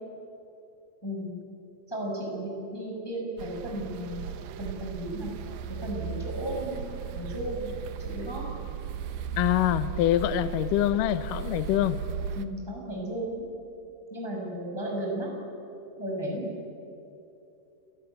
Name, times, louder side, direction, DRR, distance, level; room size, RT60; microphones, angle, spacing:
voice 1, 1.0-1.3 1.9-4.3 4.6-5.3 5.8-7.7 8.0-8.4 12.3-13.4 14.1-15.3 16.0-16.5, right 1 dB, 5° left, -2 dB, 5.1 m, -34 dB
sound 1, 3.4-12.5, right 7 dB, 70° right, 2.3 m, -36 dB
voice 2, 9.4-12.0, left 13 dB, 75° left, 13 dB, 2.1 m, -25 dB
29.5 x 18.5 x 9.2 m, 2.8 s
omnidirectional pair, 4.8 m